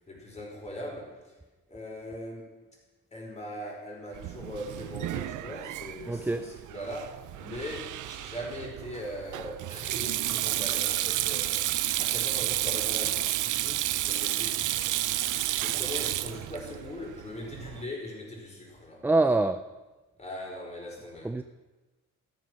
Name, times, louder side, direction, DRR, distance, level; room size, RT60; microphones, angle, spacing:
voice 1, 0.1-1.3 1.7-2.5 3.1-15.1 15.5-19.1 20.2-21.3, left 1 dB, 20° left, -1 dB, 5.1 m, -40 dB
Sink (filling or washing), 4.1-17.8, right 14 dB, 85° right, 0.6 m, -31 dB
voice 2, 6.1-6.5 19.0-19.7 21.2-21.4, right 2 dB, 5° right, 10 dB, 0.4 m, -25 dB
14.0 x 13.0 x 6.3 m, 1.2 s
cardioid pair, 135°, 30 cm